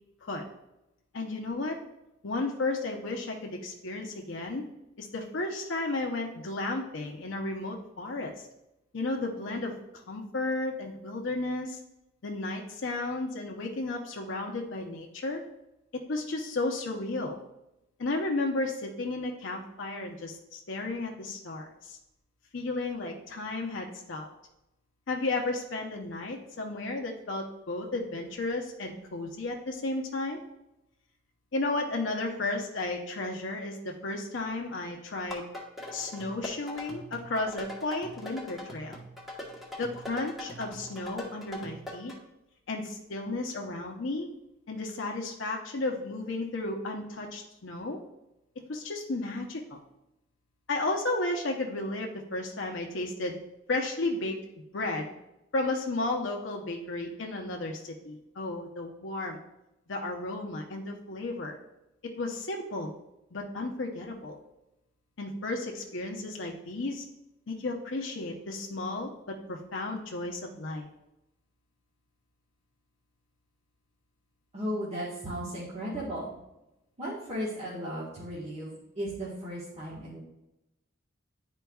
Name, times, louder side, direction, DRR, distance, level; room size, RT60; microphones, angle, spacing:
voice 1, 1.1-1.8 2.2-4.6 5.0-8.3 8.9-11.8 12.2-15.4 16.1-17.4 18.0-22.0 22.5-24.3 25.1-30.4 31.5-35.4 35.9-39.0 39.8-42.1 42.7-44.3 44.7-48.0 48.7-49.8 50.7-53.4 53.7-54.4 54.7-55.1 55.5-59.4 59.9-61.6 62.0-62.9 63.3-64.4 65.2-67.1 67.5-70.9, left 2 dB, 75° left, 1 dB, 0.7 m, -33 dB
sound 1, 35.3-42.2, left 1 dB, ahead, 1.1 m, -42 dB
voice 2, 74.5-76.3 77.0-80.2, equal, 35° right, -8 dB, 1.4 m, -35 dB
10.5 x 4.5 x 2.3 m, 0.92 s
head